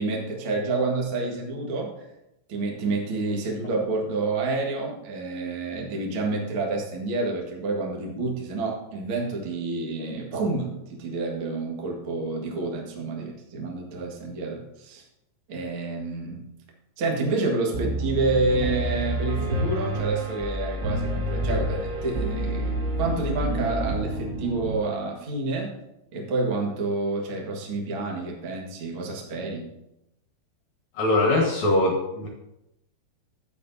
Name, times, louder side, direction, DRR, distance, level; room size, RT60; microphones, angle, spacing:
voice 1, 0.0-1.9 2.5-15.0 15.5-16.4 17.0-25.7 26.1-29.7, right 3 dB, 70° right, -1 dB, 1.2 m, -28 dB
Piano, 17.7-24.8, right 1 dB, 90° right, 4.2 m, -28 dB
voice 2, 31.0-32.3, left 2 dB, 65° left, -1 dB, 1.8 m, -22 dB
11.5 x 8.7 x 2.7 m, 0.88 s
omnidirectional pair, 5.2 m